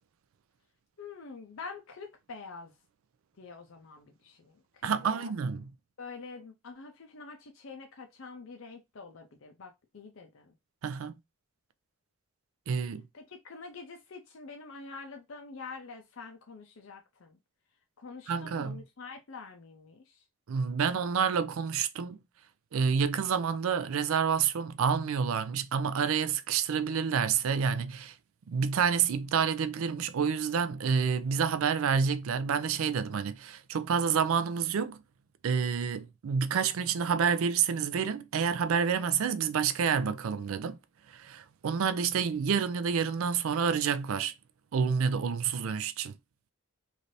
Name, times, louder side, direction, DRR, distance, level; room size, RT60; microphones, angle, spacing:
voice 1, 1.0-2.7 3.4-5.3 6.0-10.5 13.1-17.4 18.0-20.2, left 4 dB, 65° left, 0.6 m, -46 dB
voice 2, 4.8-5.7 10.8-11.2 12.7-13.1 18.3-18.8 20.5-22.2 22.7-28.2 28.5-35.0 35.4-40.8 41.1-44.3 44.7-46.1, right 6 dB, 70° right, 0.4 m, -28 dB
3.2 x 2.6 x 2.6 m
head